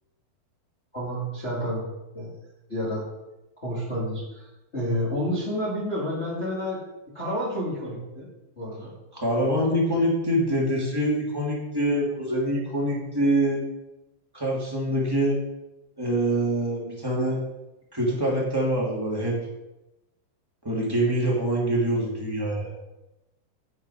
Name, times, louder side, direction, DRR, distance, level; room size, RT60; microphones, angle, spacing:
voice 1, 0.9-1.8 2.1-2.3 2.7-3.0 3.6-4.5 4.7-6.8 7.1-8.3 8.6-8.9 9.3-9.5, equal, 20° left, -7 dB, 1.9 m, -29 dB
voice 2, 9.1-13.7 14.3-15.4 16.0-17.4 17.9-19.4 20.6-22.7, right 1 dB, 10° right, -5 dB, 1.0 m, -25 dB
8.7 x 8.4 x 5.0 m, 0.97 s
omnidirectional pair, 5.5 m